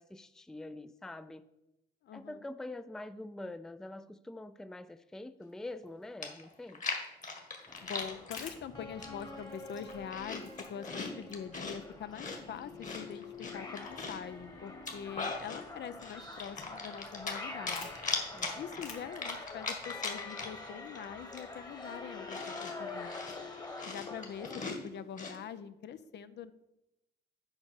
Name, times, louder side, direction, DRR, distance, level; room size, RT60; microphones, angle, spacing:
voice 1, 0.0-1.4 2.1-6.8 18.3-18.7, left 2 dB, 5° left, 13 dB, 0.4 m, -45 dB
voice 2, 2.0-2.4 7.8-13.2 13.5-17.9 18.5-23.1 23.8-26.5, left 8 dB, 60° left, 13 dB, 0.6 m, -44 dB
Chewing mastication, 5.8-5.9 6.2-8.5 9.0-9.4 9.7-11.8 12.1-14.3 14.7-15.6 16.0-17.4 17.7-20.7 20.9-21.0 21.3-25.4, left 4 dB, 40° left, 1.9 m, -39 dB
sound 1, 7.7-24.7, left 3 dB, 20° left, 1.4 m, -46 dB
sound 2, 8.0-23.8, left 5 dB, 85° left, 1.6 m, -58 dB
8.2 x 5.2 x 6.5 m, 0.92 s
cardioid pair, 90°, 20 cm